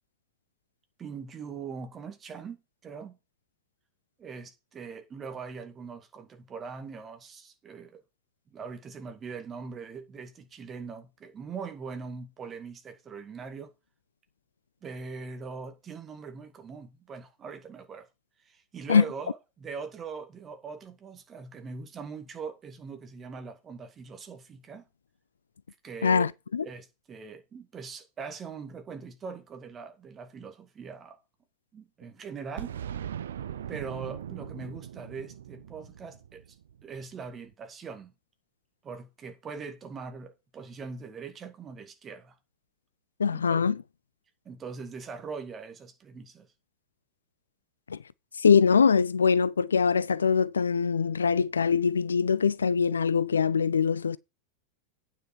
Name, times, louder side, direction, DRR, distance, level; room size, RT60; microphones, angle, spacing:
voice 1, 1.0-2.6 2.8-3.2 4.2-8.0 8.5-13.7 14.8-18.1 18.5-24.9 25.8-26.3 26.6-31.2 31.7-32.7 33.7-36.4 36.8-38.1 38.8-42.4 43.3-43.8 44.5-46.5, right 5 dB, 25° right, 2.1 m, -41 dB
voice 2, 26.0-26.6 43.2-43.7 47.9-48.0 48.4-54.2, left 6 dB, 70° left, 0.4 m, -23 dB
Boom, 32.6-37.2, right 9 dB, 65° right, 0.5 m, -40 dB
9.2 x 6.7 x 4.5 m
figure-of-eight pair, 90°, 0 cm